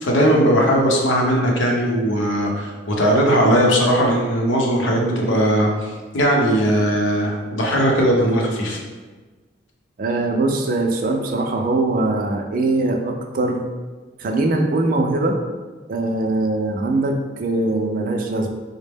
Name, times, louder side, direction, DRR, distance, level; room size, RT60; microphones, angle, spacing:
voice 1, 0.0-8.8, equal, 90° left, -1 dB, 0.8 m, -18 dB
voice 2, 10.0-13.6 14.2-15.4 15.9-18.5, right 2 dB, 45° right, 4 dB, 0.4 m, -21 dB
4.2 x 2.1 x 3.4 m, 1.3 s
head